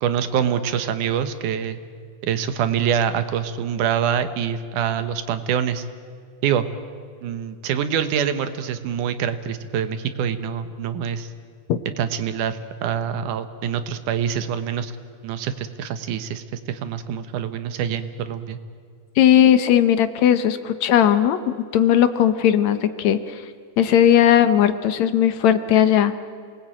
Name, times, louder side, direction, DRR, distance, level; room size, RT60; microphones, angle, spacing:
voice 1, 0.0-1.8 2.2-5.9 6.4-6.7 7.2-11.3 12.0-14.9 15.2-18.6, right 8 dB, 85° right, 11 dB, 2.7 m, -25 dB
voice 2, 19.2-23.4 23.8-26.1, left 10 dB, 70° left, 11 dB, 2.2 m, -17 dB
27.5 x 19.5 x 9.0 m, 2.1 s
omnidirectional pair, 3.5 m